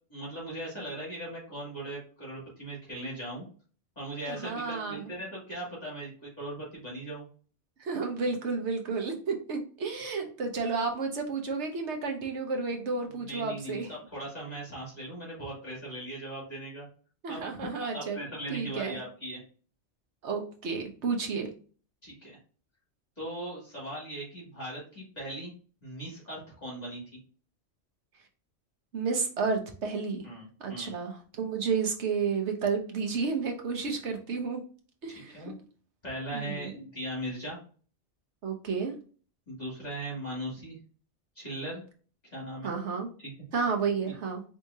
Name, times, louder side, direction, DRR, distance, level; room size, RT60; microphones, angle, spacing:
voice 1, 0.1-3.5 4.0-7.2 13.2-16.9 17.3-17.5 17.8-19.4 22.0-22.4 23.2-25.5 25.8-27.0 30.2-30.9 35.1-35.5 36.0-37.6 39.5-40.8 41.4-41.8 42.2-42.7 43.2-43.3, right 1 dB, 35° left, -6 dB, 2.5 m, -39 dB
voice 2, 4.3-5.1 7.8-13.9 17.2-18.2 18.5-19.0 20.2-21.5 28.9-30.2 30.6-34.6 35.0-35.5 36.3-36.7 38.4-38.9 42.6-43.1 43.5-44.4, right 5 dB, 70° right, 3 dB, 1.3 m, -31 dB
4.7 x 3.4 x 2.7 m, 0.40 s
omnidirectional pair, 1.2 m